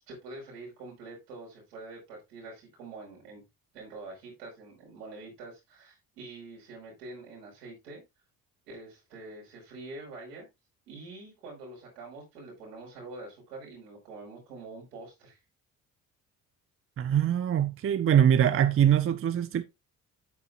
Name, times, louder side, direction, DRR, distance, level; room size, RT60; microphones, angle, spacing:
voice 1, 0.1-3.4 3.7-8.0 8.7-10.5 10.9-15.4, right 3 dB, 75° right, 5.1 m, -45 dB
voice 2, 17.0-19.6, right 9 dB, 30° right, 0.7 m, -23 dB
9.5 x 8.2 x 2.5 m
figure-of-eight pair, 45°, 47 cm